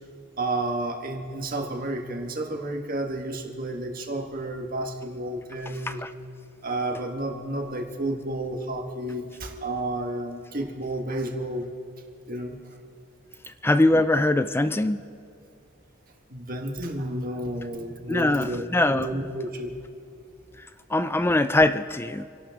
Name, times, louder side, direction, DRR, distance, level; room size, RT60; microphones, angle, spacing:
voice 1, 0.4-6.0 6.6-11.7 12.3-12.6 16.3-19.7, right 1 dB, 40° right, 2 dB, 1.5 m, -31 dB
voice 2, 13.5-15.0 18.1-19.1 20.6-22.3, left 2 dB, 10° left, 12 dB, 0.3 m, -22 dB
27.5 x 11.5 x 3.6 m, 2.4 s
head